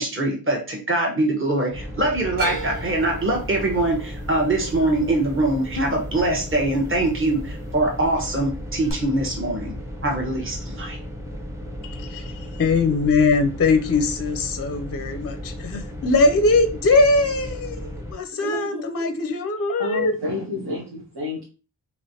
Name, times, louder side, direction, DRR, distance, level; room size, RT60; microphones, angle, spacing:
voice 1, 0.0-9.7 10.0-11.0, right 2 dB, 30° right, 0 dB, 1.0 m, -23 dB
sound 1, 1.7-18.1, equal, 5° right, 0.7 m, -35 dB
sound 2, 2.4-6.6 6.9-7.6 8.9-9.0, right 1 dB, 55° right, 1.0 m, -35 dB
voice 2, 11.8-20.1, left 3 dB, 35° left, 6 dB, 0.4 m, -21 dB
voice 3, 18.4-19.1 19.8-21.5, left 1 dB, 75° right, -2 dB, 1.0 m, -30 dB
3.2 x 2.9 x 2.7 m, 0.34 s
wide cardioid pair, 85°, 40 cm